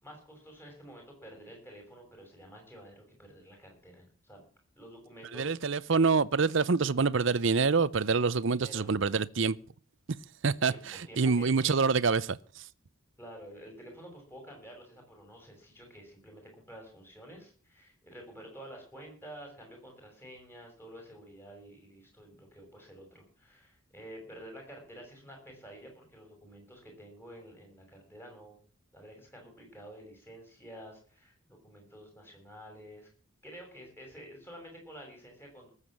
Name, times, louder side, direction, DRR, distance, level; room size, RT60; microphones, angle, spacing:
voice 1, 0.0-4.4 4.8-5.9 8.5-8.9 10.6-11.7 13.2-28.6 28.9-33.1 33.4-35.7, equal, 10° left, 6.3 m, -50 dB
voice 2, 5.3-9.6 10.4-12.4, right 4 dB, 60° right, 0.6 m, -26 dB
19.0 x 8.2 x 7.3 m
head